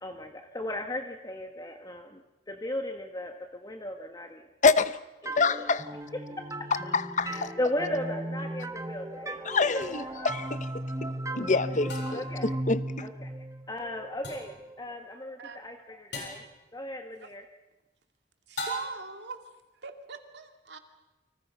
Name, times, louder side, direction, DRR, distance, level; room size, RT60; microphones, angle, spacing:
voice 1, 0.0-2.2 2.5-4.5 5.2-5.7 6.4-6.7 7.2-9.6 10.0-10.3 12.1-12.4 13.0-13.3 13.7-16.4 16.7-17.4, left 1 dB, 20° left, 4 dB, 1.5 m, -36 dB
voice 2, 4.6-5.0 5.3-5.9 6.7-7.5 9.4-11.1 11.4-13.1, left 4 dB, 45° left, 13 dB, 0.9 m, -27 dB
sound 1, 5.3-14.8, right 1 dB, 20° right, 1.2 m, -37 dB
sound 2, 9.8-9.9 11.9-12.4 14.2-14.6 16.1-16.5 18.6-19.2, left 1 dB, 70° left, 7.7 m, -38 dB
voice 3, 18.5-19.4 19.8-20.8, right 4 dB, 70° right, 6 dB, 2.4 m, -41 dB
29.0 x 26.0 x 5.7 m, 1.0 s
head